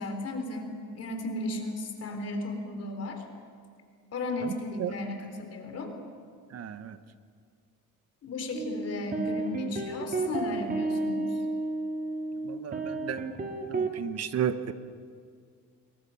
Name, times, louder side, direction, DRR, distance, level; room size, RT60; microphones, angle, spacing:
voice 1, 0.0-3.2 4.1-5.9 8.2-11.4, left 2 dB, 50° left, 5 dB, 3.7 m, -35 dB
voice 2, 6.5-7.0 12.4-13.2 13.7-14.7, right 9 dB, 50° right, 11 dB, 1.3 m, -33 dB
sound 1, 8.5-14.0, right 3 dB, 25° right, 2.2 m, -32 dB
27.5 x 22.5 x 5.8 m, 2.1 s
cardioid pair, 120°, 32 cm